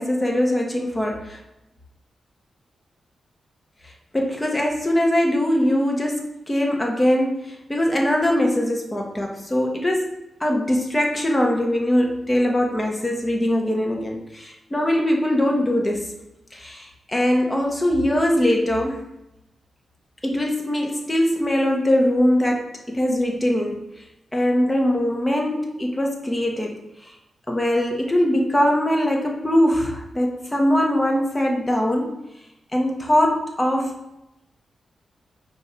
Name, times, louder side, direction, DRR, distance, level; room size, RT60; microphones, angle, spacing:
voice 1, 0.0-1.4 4.1-16.0 16.5-19.0 20.2-23.8 24.3-26.7 27.5-32.1 32.7-33.9, left 1 dB, 15° left, 0 dB, 0.9 m, -21 dB
5.3 x 2.4 x 4.2 m, 0.90 s
cardioid pair, 90°, 0 cm